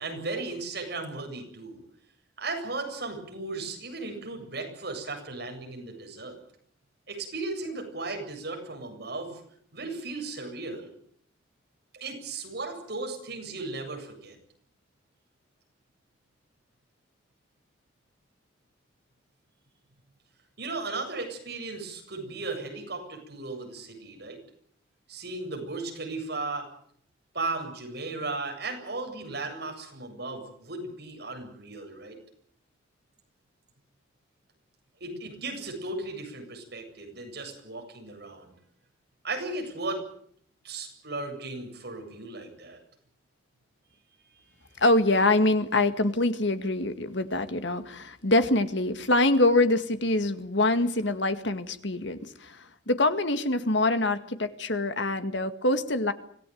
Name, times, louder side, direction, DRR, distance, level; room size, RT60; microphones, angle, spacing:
voice 1, 0.0-1.8 2.4-6.4 7.1-9.4 9.7-10.9 11.9-14.4 20.6-24.4 25.1-26.7 27.3-32.2 35.0-38.5 39.2-40.0 40.6-42.8, right 3 dB, 55° right, 3 dB, 7.9 m, -36 dB
voice 2, 44.8-56.1, left 2 dB, 65° left, 9 dB, 2.0 m, -25 dB
25.5 x 18.0 x 9.5 m, 0.64 s
head